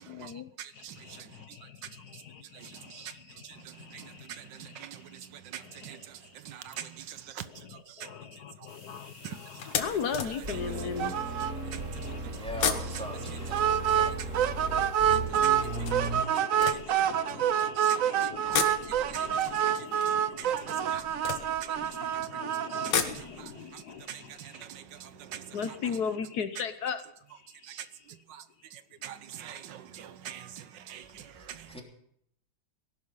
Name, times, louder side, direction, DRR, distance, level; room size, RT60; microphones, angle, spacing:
voice 1, 0.0-4.8 5.1-5.3 5.5-6.3 6.7-6.9 7.4-12.5 15.5-24.6 25.5-27.0, left 6 dB, 65° left, 1.4 m, -40 dB
voice 2, 0.6-0.9 2.9-3.1 3.9-4.0 4.6-5.0 5.5-6.0 6.5-7.4 11.7-11.8 13.7-13.8 15.4-15.5 17.8-17.9 18.4-18.5 19.1-19.3 20.4-20.5 20.9-21.0 22.7-23.8 24.1-25.4 27.7-27.8 29.0-30.5 30.9-31.0, right 10 dB, 80° right, 1.6 m, -43 dB
sound 1, 7.2-7.5 8.1-8.3 8.7-8.8 9.6-11.3 12.4-14.8 15.6-17.6 18.3-22.1 22.6-25.6 25.9-26.0 26.3-26.4, left 7 dB, 80° left, 2.0 m, -36 dB
sound 2, 8.7-16.2, right 2 dB, 45° right, 2.4 m, -37 dB
sound 3, 11.0-11.5 11.8-11.9 12.3-12.4 13.5-15.6 15.9-22.9, right 10 dB, 60° right, 0.9 m, -27 dB
voice 3, 12.3-14.1 31.3-31.8, equal, 5° left, 3.1 m, -42 dB
18.0 x 11.5 x 5.6 m
omnidirectional pair, 1.9 m